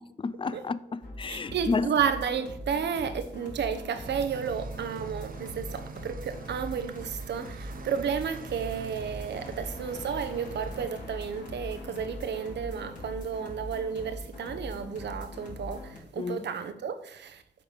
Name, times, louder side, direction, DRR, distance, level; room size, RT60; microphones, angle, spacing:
voice 1, 0.0-1.9 16.2-16.5, left 4 dB, 30° left, 0.5 m, -31 dB
sound 1, 1.0-16.0, left 1 dB, 50° left, 3.8 m, -42 dB
voice 2, 1.3-17.4, right 7 dB, 85° right, 0.8 m, -32 dB
sound 2, 4.0-10.9, right 7 dB, 55° right, 0.6 m, -45 dB
sound 3, 8.8-14.4, left 2 dB, 75° left, 1.9 m, -51 dB
8.4 x 4.0 x 7.0 m
cardioid pair, 55°, 17 cm